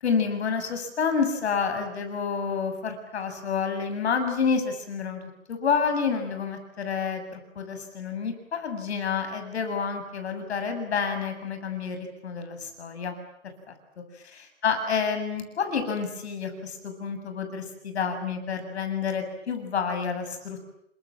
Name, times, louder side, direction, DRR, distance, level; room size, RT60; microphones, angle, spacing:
voice 1, 0.0-5.2 5.5-13.1 13.7-13.8 14.2-20.7, left 6 dB, 55° left, 7 dB, 7.6 m, -29 dB
30.0 x 26.0 x 7.5 m, 0.76 s
hypercardioid pair, 170°, 38 cm